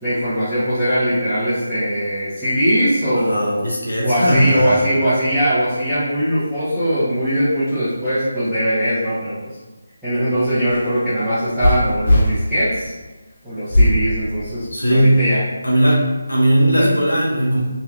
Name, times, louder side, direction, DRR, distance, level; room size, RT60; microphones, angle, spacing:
voice 1, 0.0-3.7 4.0-9.4 10.0-12.9 13.4-15.4 16.8-16.9, equal, ahead, -21 dB, 1.1 m, -20 dB
voice 2, 3.1-4.9 14.7-15.2 15.6-17.7, right 1 dB, 85° left, -5 dB, 0.9 m, -18 dB
sound 1, 10.4-12.3 13.7-14.0 14.6-15.2, left 1 dB, 55° left, 1.1 m, -17 dB
3.3 x 2.8 x 2.5 m, 1.2 s
figure-of-eight pair, 155°, 0 cm